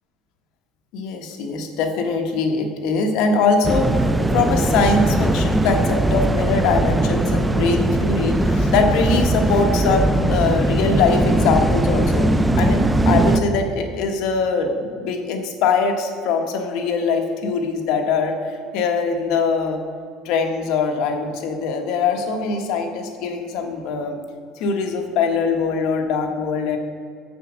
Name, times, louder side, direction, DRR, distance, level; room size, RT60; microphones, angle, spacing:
voice 1, 0.9-12.3 12.5-19.8 20.2-24.1 24.6-26.8, left 4 dB, 65° left, 4 dB, 1.2 m, -22 dB
sound 1, 3.6-13.4, right 1 dB, 10° right, 0.4 m, -19 dB
7.2 x 6.7 x 6.2 m, 2.2 s
cardioid pair, 140°, 0 cm